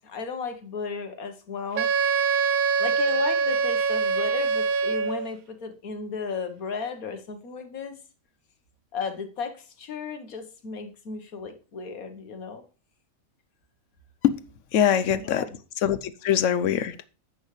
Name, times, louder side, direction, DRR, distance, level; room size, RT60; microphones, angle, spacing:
voice 1, 0.0-1.9 2.8-8.0 8.9-12.6 15.2-15.5, left 5 dB, 80° left, 1.7 m, -34 dB
Wind instrument woodwind instrument, 1.8-5.3, right 5 dB, 80° right, 1.2 m, -24 dB
voice 2, 14.7-15.4 15.8-16.9, left 9 dB, 65° left, 1.0 m, -22 dB
10.5 x 8.1 x 3.2 m
omnidirectional pair, 1.5 m